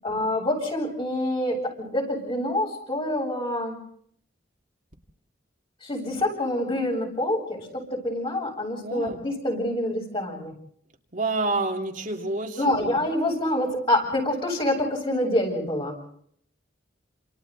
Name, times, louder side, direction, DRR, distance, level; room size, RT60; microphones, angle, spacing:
voice 1, 0.0-3.8 5.8-10.5 12.6-16.0, left 1 dB, 30° left, 0 dB, 7.9 m, -26 dB
voice 2, 8.8-9.2 11.1-13.0, right 2 dB, 45° right, 1 dB, 2.7 m, -29 dB
29.5 x 28.5 x 4.0 m, 0.65 s
head